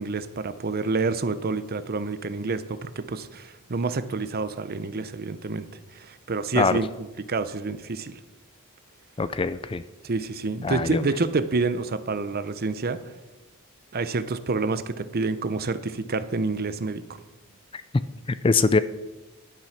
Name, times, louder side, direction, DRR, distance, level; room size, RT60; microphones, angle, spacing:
voice 1, 0.0-5.7 5.9-8.1 10.0-13.0 13.9-17.0, right 3 dB, 45° right, 13 dB, 0.7 m, -28 dB
voice 2, 9.2-9.8 10.6-11.0 18.3-18.8, left 4 dB, 25° left, 14 dB, 0.4 m, -22 dB
10.5 x 9.3 x 5.8 m, 1.1 s
head